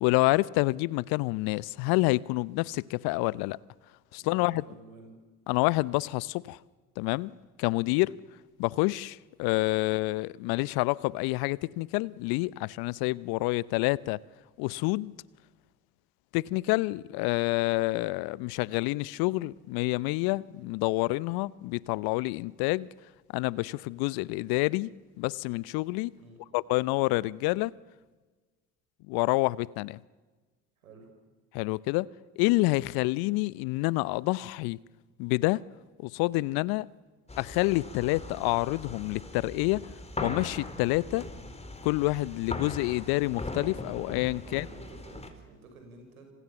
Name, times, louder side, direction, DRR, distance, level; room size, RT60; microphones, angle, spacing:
voice 1, 0.0-3.6 4.1-4.6 5.5-6.6 7.0-7.3 7.6-8.2 8.6-14.2 14.6-15.1 16.3-22.9 23.3-26.1 26.5-27.7 29.1-30.0 31.5-32.1 32.4-34.8 35.2-35.6 36.0-36.9 37.4-39.8 40.2-41.3 41.8-44.6, left 22 dB, 60° left, 0.8 m, -28 dB
voice 2, 4.2-5.2 26.2-26.4 30.8-31.1 44.4-46.3, right 3 dB, 85° right, 6.1 m, -51 dB
sound 1, 37.3-45.3, left 2 dB, 15° left, 4.3 m, -40 dB
27.0 x 26.5 x 7.1 m
hypercardioid pair, 60°, 41 cm